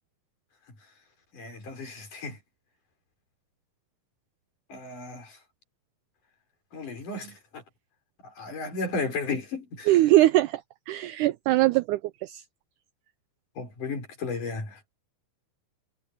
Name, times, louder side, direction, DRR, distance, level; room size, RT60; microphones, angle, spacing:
voice 1, 1.3-2.4 4.7-5.4 6.7-7.6 8.2-9.9 13.6-14.8, left 3 dB, 60° left, 7.3 m, -34 dB
voice 2, 9.9-10.6 10.9-12.4, right 16 dB, 85° right, 1.8 m, -21 dB
omnidirectional pair, 4.1 m